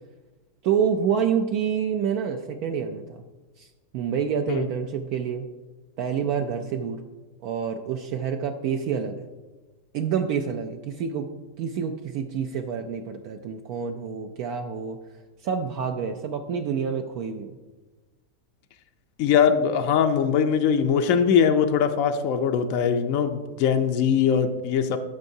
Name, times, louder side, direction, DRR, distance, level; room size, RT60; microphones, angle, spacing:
voice 1, 0.6-3.2 3.6-3.7 3.9-5.5 6.0-7.0 7.4-9.3 9.9-11.3 11.6-15.0 15.4-17.5, right 7 dB, 70° right, 4 dB, 1.0 m, -27 dB
voice 2, 19.2-25.0, left 7 dB, 70° left, 6 dB, 0.8 m, -21 dB
13.0 x 6.4 x 2.7 m, 1.2 s
omnidirectional pair, 1.8 m